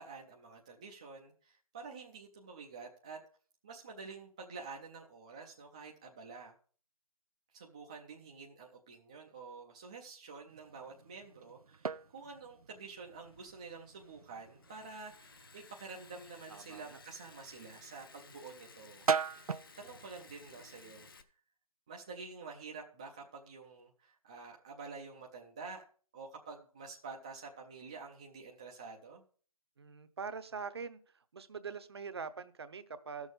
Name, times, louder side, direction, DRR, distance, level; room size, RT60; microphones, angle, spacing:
voice 1, 0.0-3.2 3.6-6.5 7.5-19.0 19.8-21.1 21.9-25.8 26.1-29.2, right 4 dB, 10° right, -1 dB, 0.5 m, -49 dB
sound 1, 10.5-21.2, right 6 dB, 90° right, 0.6 m, -42 dB
Liquid, 13.1-21.2, left 5 dB, 40° left, 0.9 m, -58 dB
voice 2, 16.5-17.0 29.8-33.3, right 5 dB, 45° right, 12 dB, 0.8 m, -44 dB
13.5 x 6.4 x 5.1 m, 0.43 s
figure-of-eight pair, 165°, 18 cm